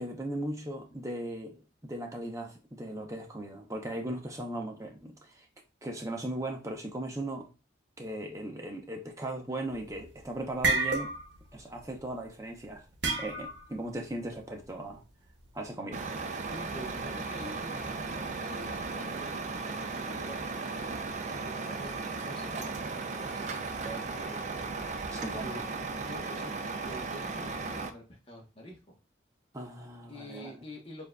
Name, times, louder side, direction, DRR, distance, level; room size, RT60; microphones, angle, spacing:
voice 1, 0.0-5.5 5.8-7.5 8.0-11.1 11.5-12.8 13.2-15.0 15.5-16.0 25.1-25.5 29.5-30.5, right 1 dB, 15° right, 0.7 m, -38 dB
sound 1, 9.8-10.1 10.4-11.5 11.7-12.0 13.0-13.7, right 3 dB, 70° right, 0.8 m, -30 dB
Truck, 15.9-27.9, right 3 dB, 40° right, 0.4 m, -36 dB
voice 2, 16.5-24.5 25.4-25.6 26.0-26.5 26.8-29.0 30.1-31.1, equal, 30° left, 1.0 m, -47 dB
7.0 x 2.6 x 2.3 m
head